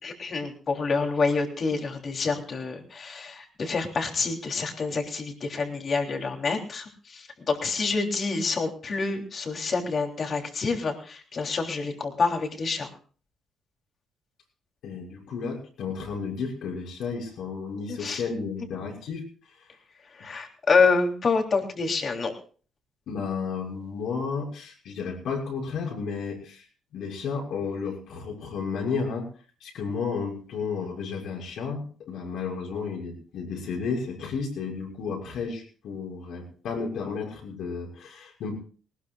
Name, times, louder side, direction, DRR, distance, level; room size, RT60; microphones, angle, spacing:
voice 1, 0.0-12.9 17.9-18.2 20.0-22.3, left 4 dB, 45° left, 3 dB, 3.2 m, -27 dB
voice 2, 14.8-19.2 23.1-26.7 26.9-29.3 29.6-38.5, left 5 dB, 75° left, -1 dB, 6.4 m, -32 dB
19.5 x 19.5 x 2.4 m, 0.39 s
cardioid pair, 90°, 0 cm